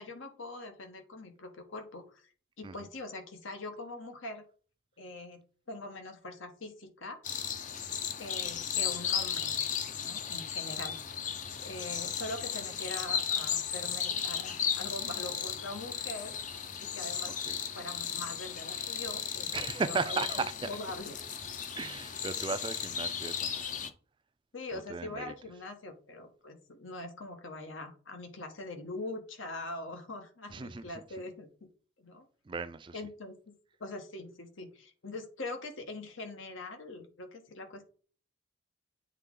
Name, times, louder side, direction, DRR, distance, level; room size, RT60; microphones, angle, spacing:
voice 1, 0.0-2.3 2.6-4.4 5.0-5.4 5.7-7.2 8.2-9.5 10.0-11.0 11.6-16.3 16.8-19.5 19.9-21.1 24.5-31.5 32.0-32.3 32.9-33.5 33.8-37.8, left 2 dB, 85° left, 1.3 m, -42 dB
sound 1, 7.2-23.9, left 8 dB, 40° left, 0.5 m, -35 dB
voice 2, 19.5-20.7 21.8-23.9 24.7-25.3 30.5-31.0 32.5-33.0, right 4 dB, 25° right, 0.3 m, -36 dB
8.2 x 3.6 x 3.7 m
head